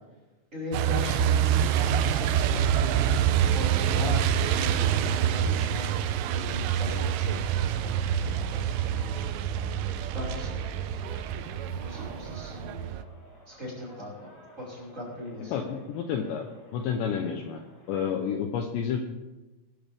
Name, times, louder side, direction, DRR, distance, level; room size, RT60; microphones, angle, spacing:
voice 1, 0.5-3.2 3.5-5.9 6.3-9.2 10.1-10.6 11.7-12.9 13.5-14.3 14.6-15.5, left 2 dB, 15° right, -4 dB, 5.4 m, -39 dB
Truck, 0.7-13.0, right 9 dB, 85° right, 3.2 m, -26 dB
sound 1, 1.9-18.1, equal, 35° left, 5.6 m, -51 dB
voice 2, 15.5-16.5 16.7-17.6 17.9-19.0, left 7 dB, 75° left, 3 dB, 2.9 m, -30 dB
23.0 x 11.5 x 3.6 m, 1.1 s
omnidirectional pair, 5.7 m